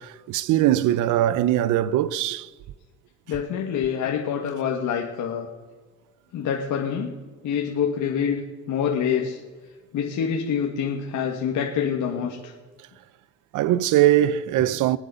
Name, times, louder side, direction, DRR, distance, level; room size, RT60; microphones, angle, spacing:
voice 1, 0.0-2.5 13.5-15.0, right 13 dB, 90° right, 0.7 m, -21 dB
voice 2, 3.3-5.5 6.3-7.1 7.4-8.4 8.7-9.4 9.9-12.5 14.5-14.6, left 7 dB, 80° left, 1.9 m, -26 dB
19.5 x 9.2 x 7.0 m
cardioid pair, 90°, 30 cm